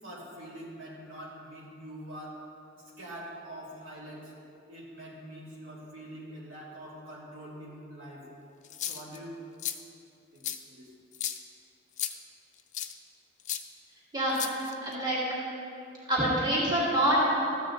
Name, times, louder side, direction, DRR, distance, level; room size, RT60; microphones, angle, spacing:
voice 1, 0.0-2.4 2.7-4.3 4.7-8.3 8.9-9.4 10.3-10.9, right 1 dB, 75° right, -6 dB, 2.5 m, -44 dB
sound 1, 8.6-9.2 9.6-9.8 10.4-10.6 11.1-11.4 12.0-12.1 12.7-12.9 13.5-13.6 14.3-14.9, left 11 dB, 35° left, 0.4 m, -34 dB
voice 2, 14.1-15.2 16.1-17.2, right 1 dB, 20° right, -8 dB, 2.3 m, -26 dB
13.5 x 8.9 x 3.8 m, 2.6 s
head